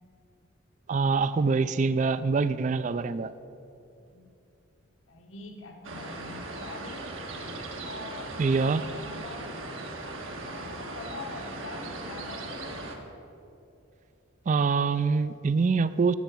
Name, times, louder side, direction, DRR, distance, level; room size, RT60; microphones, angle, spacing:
voice 1, 0.9-3.3 8.4-8.8 14.5-16.1, right 4 dB, 35° right, 14 dB, 0.3 m, -25 dB
voice 2, 5.1-7.1 7.8-8.3 8.8-9.5 10.5-12.7, left 3 dB, 75° left, 2 dB, 1.3 m, -44 dB
sound 1, 5.8-13.0, right 2 dB, 80° right, 1.6 m, -38 dB
13.5 x 6.9 x 9.0 m, 2.7 s
head